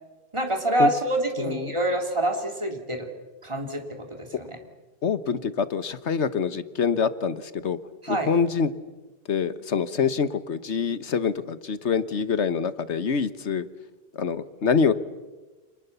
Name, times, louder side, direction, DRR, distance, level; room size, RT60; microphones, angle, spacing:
voice 1, 0.3-3.1 3.4-4.6 8.0-8.3, right 1 dB, 25° right, 3 dB, 3.4 m, -26 dB
voice 2, 1.4-1.7 5.0-7.8 8.1-8.7 9.3-13.7 14.1-14.9, left 6 dB, 85° left, 14 dB, 1.5 m, -25 dB
29.5 x 26.5 x 7.0 m, 1.2 s
omnidirectional pair, 1.1 m